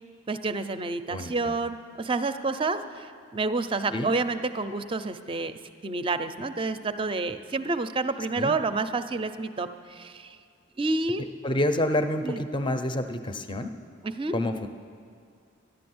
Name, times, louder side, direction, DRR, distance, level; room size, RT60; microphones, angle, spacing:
voice 1, 0.3-3.1 3.3-5.5 5.8-10.4 10.8-11.2 12.2-12.4 14.1-14.4, right 3 dB, 25° right, 10 dB, 0.5 m, -29 dB
voice 2, 1.1-1.6 3.9-4.1 8.4-8.6 11.4-13.7 14.3-14.7, left 1 dB, 25° left, 8 dB, 0.5 m, -28 dB
11.5 x 11.5 x 7.8 m, 2.3 s
head